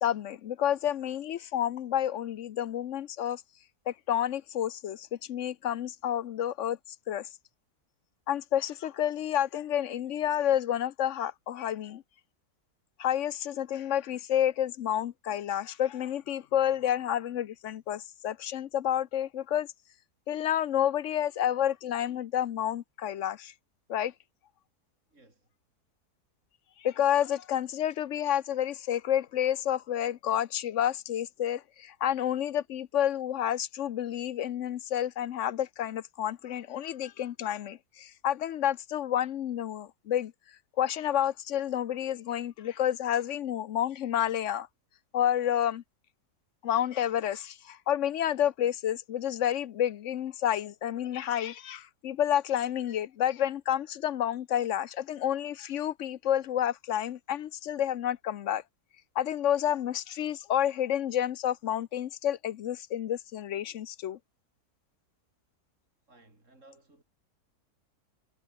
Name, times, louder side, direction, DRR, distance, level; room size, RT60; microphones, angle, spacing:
voice 1, 0.0-3.4 3.9-6.8 7.1-7.3 8.3-12.0 13.0-19.7 20.3-23.5 23.9-24.1 26.8-44.7 45.1-45.8 46.6-58.6 59.1-64.2, left 10 dB, 60° left, 0.9 m, -30 dB
voice 2, 25.1-25.5 66.0-67.0, right 2 dB, 50° right, 6.0 m, -59 dB
omnidirectional pair, 1.7 m